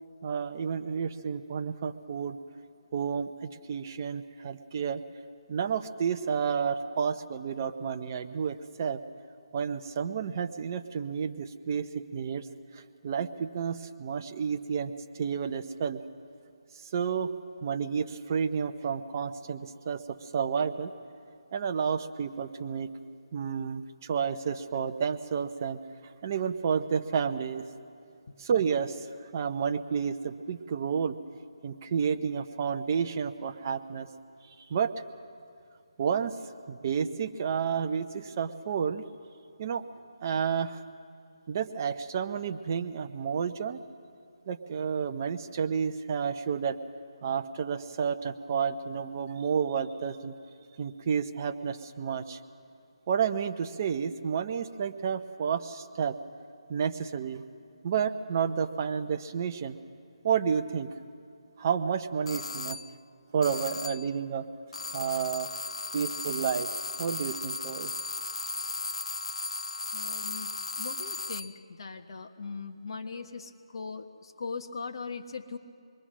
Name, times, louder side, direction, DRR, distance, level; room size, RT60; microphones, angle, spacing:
voice 1, 0.2-2.4 2.9-5.0 5.5-9.0 9.5-12.4 12.7-16.0 16.7-17.3 17.6-20.9 21.5-22.9 23.3-25.8 26.2-27.6 28.4-31.2 31.6-34.1 34.5-34.9 36.0-36.4 36.7-39.0 39.6-39.8 40.2-40.8 41.5-43.8 44.5-46.8 47.2-50.4 50.8-52.4 53.1-56.2 56.7-57.4 57.8-59.8 60.2-60.9 61.6-62.8 63.3-64.5 64.9-65.5 65.9-66.7 67.0-67.9, right 7 dB, 30° right, 7 dB, 0.8 m, -31 dB
sound 1, 62.3-63.0 63.4-64.2 64.7-71.6, left 3 dB, 80° left, 0.5 m, -36 dB
voice 2, 69.9-75.6, left 4 dB, 50° left, 4 dB, 1.5 m, -40 dB
25.5 x 21.5 x 6.2 m, 2.4 s
hypercardioid pair, 165°, 3 cm